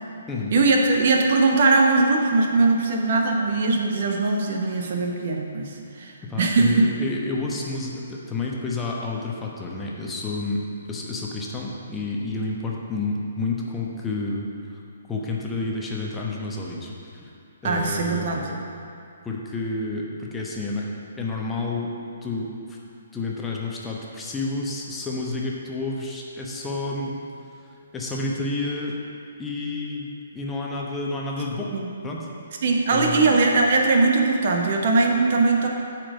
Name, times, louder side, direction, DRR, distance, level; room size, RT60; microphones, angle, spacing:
voice 1, 0.5-5.7 6.0-6.9 17.6-18.4 31.7-31.9 32.6-35.7, right 3 dB, 45° right, 1 dB, 1.0 m, -20 dB
voice 2, 6.2-10.6 10.9-14.5 14.7-14.8 15.1-16.9 17.2-17.3 17.6-18.6 19.2-20.9 21.2-21.9 22.2-22.8 23.1-27.2 27.9-29.0 29.4-31.7 32.0-32.3 32.9-33.4, left 3 dB, 10° left, -3 dB, 0.9 m, -30 dB
8.8 x 4.6 x 6.1 m, 2.5 s
figure-of-eight pair, 130°, 0 cm